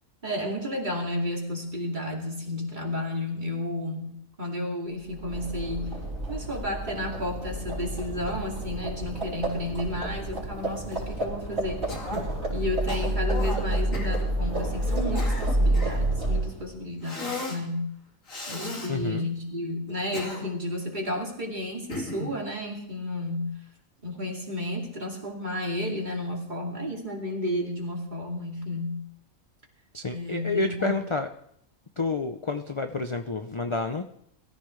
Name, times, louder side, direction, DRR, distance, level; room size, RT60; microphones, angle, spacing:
voice 1, 0.2-6.0 6.3-12.0 12.5-17.9 18.5-23.5 24.0-29.0 30.1-31.0, left 1 dB, 35° right, 0 dB, 2.8 m, -32 dB
Livestock farm animals working animals, 5.1-16.7, right 1 dB, 50° right, 4.5 m, -29 dB
Cough, 11.9-12.3 12.9-13.6 13.9-14.2 14.9-16.1 17.0-17.6 18.3-18.9 19.9-20.7 21.9-22.4, left 2 dB, 65° left, 2.9 m, -36 dB
voice 2, 18.9-19.3 29.9-31.3 32.0-34.0, left 3 dB, 35° left, 6 dB, 0.4 m, -29 dB
22.5 x 14.0 x 3.3 m, 0.71 s
omnidirectional pair, 1.5 m